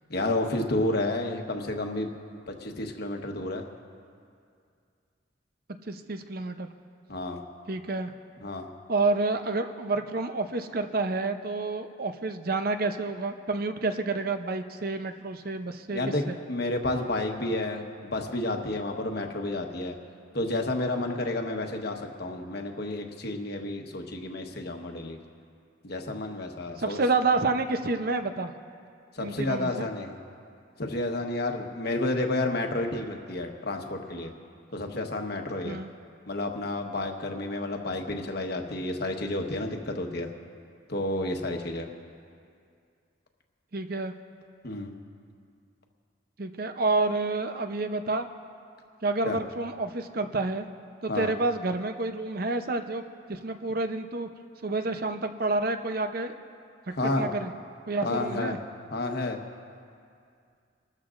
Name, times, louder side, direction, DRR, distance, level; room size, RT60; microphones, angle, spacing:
voice 1, 0.1-2.2 2.5-3.6 7.1-7.4 8.4-8.7 15.9-16.2 16.5-19.9 20.3-25.2 25.8-27.0 29.1-30.2 30.8-34.3 34.7-35.8 36.3-40.3 40.9-41.9 44.6-44.9 49.2-49.4 51.1-51.3 56.9-57.3 58.0-58.6 58.9-59.4, left 2 dB, 55° left, 3 dB, 1.2 m, -30 dB
voice 2, 5.9-6.7 7.7-8.1 8.9-16.4 26.8-28.5 29.2-29.9 35.6-35.9 43.7-44.1 46.4-48.3 49.0-50.7 51.0-53.0 53.3-54.3 54.6-56.3 56.9-57.5 57.9-58.6, right 3 dB, 50° right, 8 dB, 0.7 m, -29 dB
29.5 x 13.5 x 2.5 m, 2.3 s
head